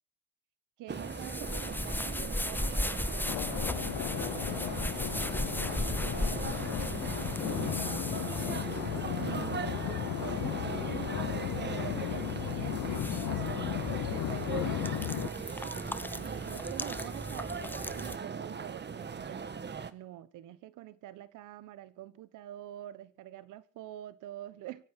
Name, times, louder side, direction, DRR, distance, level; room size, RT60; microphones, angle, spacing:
voice 1, 0.8-4.5 4.8-8.1 9.2-9.9 10.2-13.0 14.1-15.8 16.1-19.5 19.9-24.8, right 13 dB, 90° right, 1.4 m, -46 dB
sound 1, 0.9-18.2, left 1 dB, 5° left, 0.9 m, -38 dB
sound 2, 0.9-19.9, right 6 dB, 35° right, 1.4 m, -39 dB
sound 3, 3.3-15.3, left 15 dB, 75° left, 0.9 m, -35 dB
24.0 x 9.0 x 6.3 m
cardioid pair, 90°, 30 cm